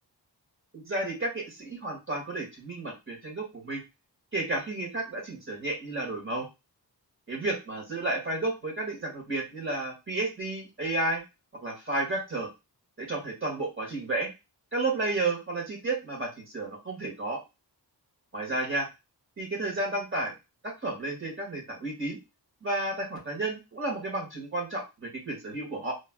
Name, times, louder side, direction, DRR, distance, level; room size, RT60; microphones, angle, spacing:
voice 1, 0.7-3.8 4.3-6.5 7.3-11.2 11.6-12.5 13.0-14.3 14.7-17.4 18.3-18.9 19.4-20.3 20.6-22.2 22.6-25.9, right 2 dB, 30° right, -1 dB, 1.9 m, -32 dB
3.3 x 3.1 x 2.3 m, 0.24 s
wide cardioid pair, 110°, 43 cm